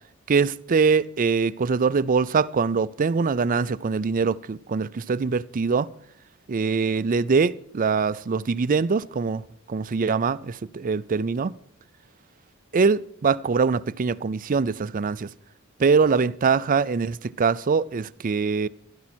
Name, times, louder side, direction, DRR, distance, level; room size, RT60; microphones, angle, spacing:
voice 1, 0.3-5.9 6.5-11.6 12.7-15.3 15.8-18.7, right 5 dB, 40° right, 0.4 m, -23 dB
14.5 x 13.0 x 4.4 m
head